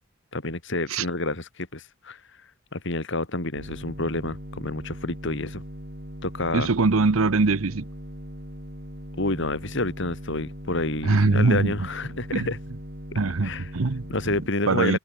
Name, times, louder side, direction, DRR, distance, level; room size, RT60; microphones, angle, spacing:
voice 1, 0.3-2.2 2.7-5.6 6.2-6.7 9.2-12.6 13.4-13.7 14.1-15.0, left 2 dB, 60° left, 2.9 m, -29 dB
sound 1, 3.6-14.5, equal, 50° right, 6.1 m, -40 dB
voice 2, 6.5-7.9 11.0-11.7 12.3-12.5 13.2-14.0 14.3-14.4 14.7-15.0, right 3 dB, 85° right, 0.8 m, -22 dB
head